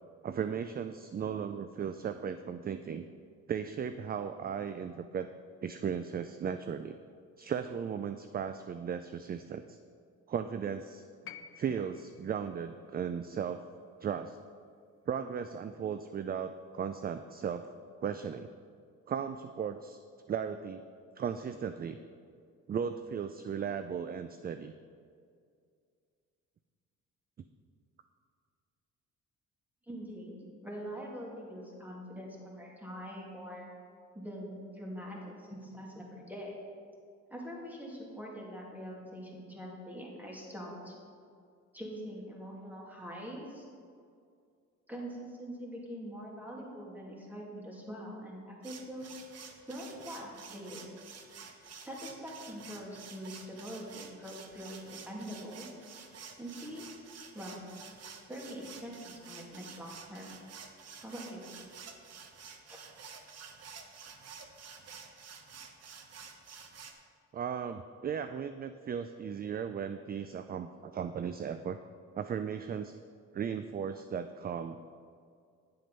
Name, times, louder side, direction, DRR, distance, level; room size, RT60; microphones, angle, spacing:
voice 1, 0.2-3.1 3.5-5.3 5.6-7.0 7.4-9.8 10.3-11.0 11.6-13.6 14.0-14.4 15.1-17.7 18.0-18.5 19.1-20.0 20.3-20.8 21.2-22.0 22.7-24.7 67.3-71.8 72.1-73.0 73.3-74.8, right 7 dB, 30° right, 10 dB, 0.4 m, -36 dB
sound 1, 11.2-15.4 16.6-16.7, left 8 dB, 45° left, 0.6 m, -54 dB
voice 2, 29.8-33.7 34.1-36.5 37.3-40.9 41.7-43.7 44.9-49.2 49.7-50.9 51.8-54.8 55.0-55.7 56.4-57.0 57.3-57.6 58.3-60.3 61.0-61.5 62.7-62.8, equal, 5° right, -3 dB, 2.5 m, -43 dB
sound 2, 48.6-66.9, right 6 dB, 55° right, 1.1 m, -50 dB
9.8 x 7.4 x 5.4 m, 2.3 s
cardioid pair, 90°, 30 cm